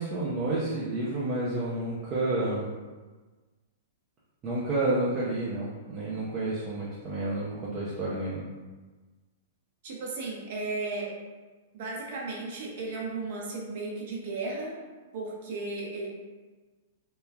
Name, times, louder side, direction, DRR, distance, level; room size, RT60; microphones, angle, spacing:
voice 1, 0.0-2.7 4.4-8.4, right 2 dB, 25° right, -8 dB, 0.5 m, -30 dB
voice 2, 9.8-11.1 11.7-14.7 15.1-16.1, right 3 dB, 55° right, -2 dB, 0.7 m, -35 dB
3.0 x 2.3 x 2.2 m, 1.3 s
hypercardioid pair, 150°, 0 cm